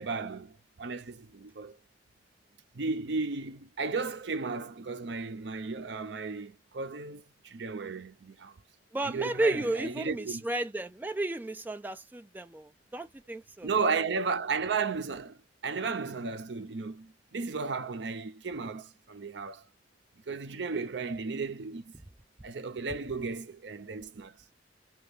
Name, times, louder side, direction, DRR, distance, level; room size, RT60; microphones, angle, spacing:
voice 1, 0.0-1.8 2.7-8.6 9.0-10.4 13.6-19.6 20.3-21.9 22.4-24.4, right 4 dB, 65° right, 0.6 m, -34 dB
voice 2, 8.9-13.7, right 2 dB, 10° right, 0.3 m, -33 dB
2.9 x 2.3 x 3.2 m
head